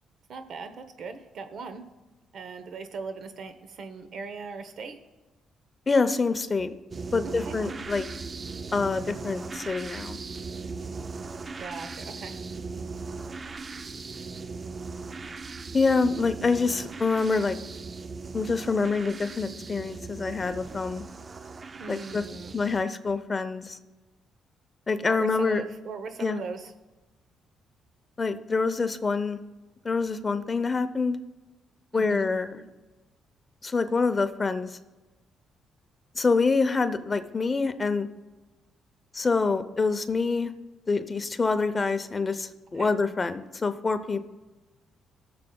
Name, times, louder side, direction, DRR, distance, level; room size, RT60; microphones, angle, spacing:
voice 1, 0.3-1.9 2.3-5.0 7.2-7.6 11.6-12.3 21.8-22.5 25.0-26.7 31.9-32.3 42.7-42.9, right 4 dB, 60° right, 9 dB, 0.9 m, -39 dB
voice 2, 5.9-6.7 7.1-8.1 8.7-10.2 15.7-17.6 18.3-21.0 21.9-22.2 22.5-23.8 24.9-25.6 26.2-26.4 28.2-29.4 29.8-31.2 31.9-32.6 33.6-34.7 36.2-38.1 39.1-40.5 40.9-44.2, left 4 dB, 30° left, 10 dB, 0.7 m, -26 dB
sound 1, 6.9-22.8, right 4 dB, 35° right, 0.4 m, -39 dB
19.5 x 6.8 x 2.3 m, 1.2 s
cardioid pair, 90°, 0 cm